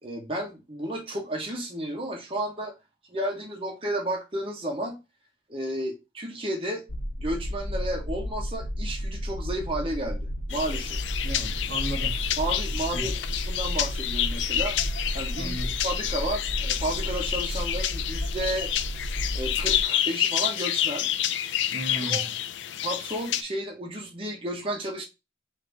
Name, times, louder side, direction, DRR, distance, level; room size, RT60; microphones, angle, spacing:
voice 1, 0.0-2.7 3.1-5.0 5.5-6.8 7.2-10.2 10.5-11.0 12.4-14.8 15.1-15.6 15.8-18.7 19.3-21.1 21.4-21.6 21.9-22.2 22.8-25.0, right 1 dB, 30° right, 0.9 m, -32 dB
sound 1, 6.9-19.8, equal, 45° left, 0.8 m, -32 dB
sound 2, 10.5-23.4, left 11 dB, 85° left, 0.4 m, -29 dB
voice 2, 11.2-12.3 12.9-13.1 15.4-15.7 21.7-22.3, right 1 dB, 70° right, 1.0 m, -35 dB
3.5 x 2.8 x 3.9 m
head